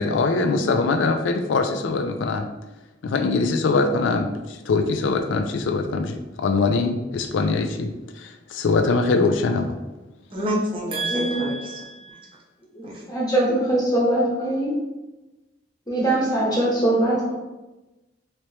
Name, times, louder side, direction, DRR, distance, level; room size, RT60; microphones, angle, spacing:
voice 1, 0.0-2.5 3.0-9.8, left 3 dB, 85° left, 7 dB, 0.4 m, -22 dB
voice 2, 10.3-12.4 12.8-13.0, right 1 dB, 30° right, -4 dB, 0.8 m, -28 dB
voice 3, 11.1-11.4 13.1-14.7 15.9-17.3, right 1 dB, 20° left, -5 dB, 1.0 m, -22 dB
3.0 x 2.8 x 3.2 m, 1.1 s
head